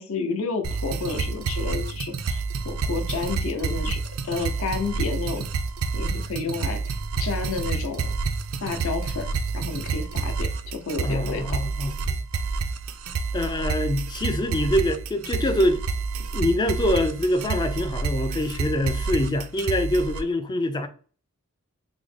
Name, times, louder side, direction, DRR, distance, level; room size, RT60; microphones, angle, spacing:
voice 1, 0.0-5.5 5.9-8.1 8.6-11.6, left 4 dB, 65° left, 0.6 m, -31 dB
sound 1, 0.6-20.2, right 4 dB, 75° right, 0.4 m, -29 dB
voice 2, 11.0-12.2 13.3-15.8 16.3-20.9, left 1 dB, 20° left, 0.3 m, -25 dB
3.6 x 2.1 x 3.2 m
head